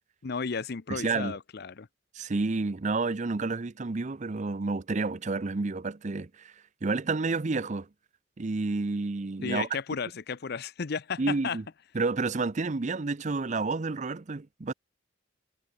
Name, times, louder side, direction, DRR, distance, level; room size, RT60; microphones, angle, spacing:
voice 1, 0.2-1.9 9.4-11.6, left 5 dB, 55° left, 0.6 m, -33 dB
voice 2, 0.9-1.4 2.1-6.5 6.8-7.9 8.4-9.7 11.2-11.6 11.9-14.7, right 3 dB, 40° right, 0.6 m, -30 dB
head